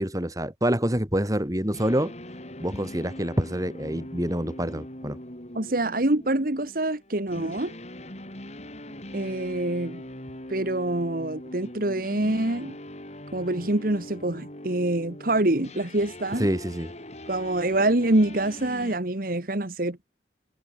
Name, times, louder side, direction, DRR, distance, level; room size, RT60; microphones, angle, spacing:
voice 1, 0.0-2.1 2.6-5.2 16.4-16.9, equal, 20° right, 4.1 m, -26 dB
sound 1, 1.7-19.0, left 1 dB, 40° left, 7.3 m, -41 dB
voice 2, 5.6-7.7 9.1-10.0 10.5-12.7 13.3-16.5 17.3-20.0, right 1 dB, 55° right, 1.8 m, -25 dB
head